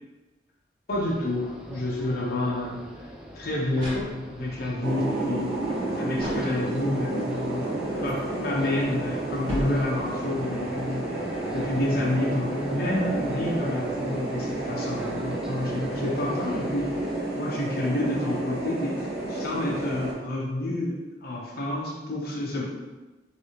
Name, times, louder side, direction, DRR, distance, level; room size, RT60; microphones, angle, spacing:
voice 1, 0.9-3.1 3.3-11.0 11.5-17.0 17.3-19.0 19.3-22.6, left 1 dB, 55° left, -3 dB, 0.8 m, -29 dB
sound 1, 0.9-17.2, equal, 5° right, 0.3 m, -44 dB
sound 2, 3.7-4.6 6.2-7.1 9.4-10.4, equal, 30° right, 1.5 m, -36 dB
sound 3, 4.8-20.1, right 2 dB, 60° right, 0.9 m, -31 dB
3.1 x 2.8 x 2.8 m, 1.2 s
head